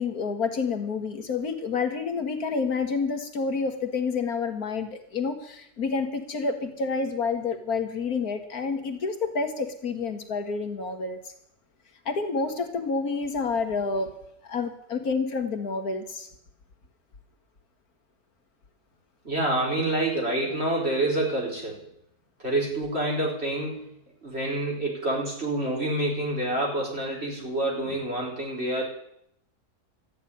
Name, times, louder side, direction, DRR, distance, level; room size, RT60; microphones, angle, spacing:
voice 1, 0.0-11.2 12.1-14.2 14.4-16.3, left 4 dB, 65° left, 6 dB, 1.9 m, -29 dB
voice 2, 19.2-21.8 22.4-23.9 24.2-28.8, right 1 dB, 40° right, -2 dB, 4.7 m, -27 dB
13.0 x 9.1 x 9.8 m, 0.74 s
omnidirectional pair, 1.7 m